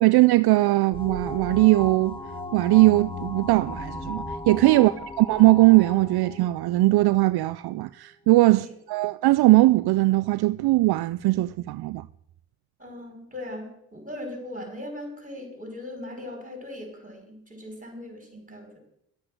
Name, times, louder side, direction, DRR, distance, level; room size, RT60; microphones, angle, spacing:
voice 1, 0.0-2.2 2.5-12.0, right 19 dB, 65° right, 0.5 m, -20 dB
sound 1, 0.9-7.3, left 2 dB, 10° left, 1.7 m, -36 dB
voice 2, 12.8-18.8, left 1 dB, 20° right, 5.4 m, -39 dB
11.0 x 8.7 x 6.3 m
supercardioid pair, 55°, 43 cm